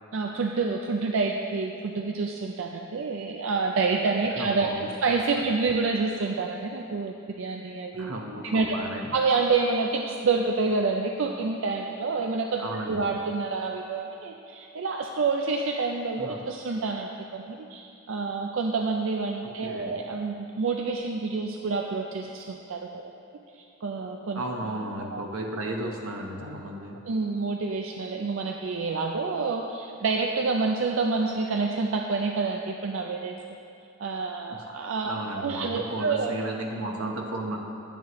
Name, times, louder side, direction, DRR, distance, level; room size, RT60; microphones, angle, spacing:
voice 1, 0.1-8.1 8.4-8.8 9.1-22.9 23.5-24.4 25.0-25.3 27.0-33.4 34.0-36.3, right 4 dB, 65° right, 2 dB, 0.4 m, -28 dB
voice 2, 4.3-4.8 8.0-9.1 12.6-13.1 16.2-16.4 19.6-19.9 24.3-27.0 34.5-34.6 35.0-37.6, right 1 dB, 90° right, 1 dB, 1.0 m, -34 dB
9.1 x 8.9 x 3.0 m, 2.8 s
head